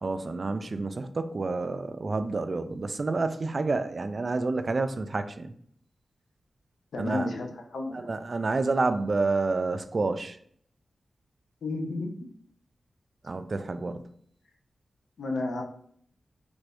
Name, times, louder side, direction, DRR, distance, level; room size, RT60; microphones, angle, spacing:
voice 1, 0.0-5.5 7.0-7.3 7.9-10.4 13.2-14.1, right 3 dB, 50° right, 10 dB, 0.3 m, -29 dB
voice 2, 6.9-7.5 7.7-8.1 11.6-12.1 15.2-15.6, left 2 dB, 90° left, 2 dB, 0.6 m, -31 dB
3.2 x 2.6 x 3.4 m, 0.62 s
cardioid pair, 70°, 0 cm